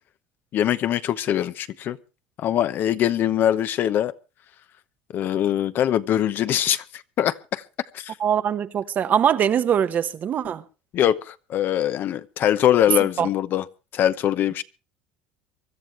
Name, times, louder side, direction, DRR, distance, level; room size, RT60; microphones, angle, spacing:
voice 1, 0.5-2.0 2.4-4.1 5.1-7.6 7.9-8.1 10.9-13.6 13.9-14.6, left 11 dB, 50° left, 0.8 m, -22 dB
voice 2, 8.2-10.6 13.2-13.3, right 8 dB, 40° right, 1.1 m, -22 dB
24.5 x 13.0 x 3.2 m
supercardioid pair, 105°, 4 cm